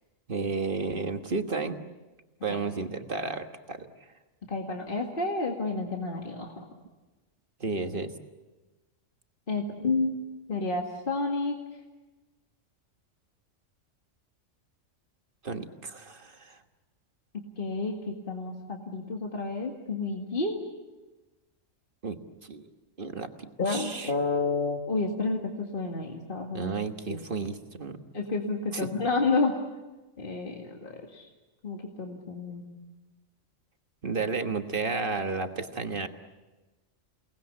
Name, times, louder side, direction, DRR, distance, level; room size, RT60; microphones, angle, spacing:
voice 1, 0.3-1.8 2.4-3.9 7.6-8.1 15.4-16.6 22.0-22.7 23.0-24.1 26.5-28.0 28.7-28.9 34.0-36.1, right 4 dB, 45° right, 6 dB, 1.6 m, -32 dB
voice 2, 4.5-6.7 9.5-10.1 10.5-11.6 17.6-20.6 23.6-26.7 27.1-27.2 28.1-29.5 30.2-31.3 31.6-32.6, left 3 dB, 40° left, 1 dB, 2.2 m, -30 dB
29.0 x 19.5 x 8.4 m, 1.2 s
omnidirectional pair, 1.3 m